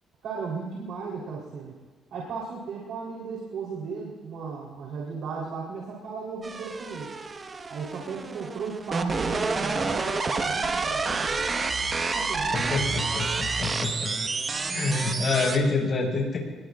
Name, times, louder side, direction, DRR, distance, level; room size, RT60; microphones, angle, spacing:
voice 1, 0.2-1.8 2.1-7.2 7.7-11.6 12.1-13.3, right 5 dB, 75° right, -3 dB, 3.8 m, -36 dB
sound 1, 6.4-15.6, right 4 dB, 35° right, 1.4 m, -29 dB
voice 2, 12.5-14.1 14.7-16.4, left 3 dB, 45° left, 0 dB, 5.8 m, -27 dB
25.5 x 21.0 x 2.5 m, 1.4 s
cardioid pair, 90°, 0 cm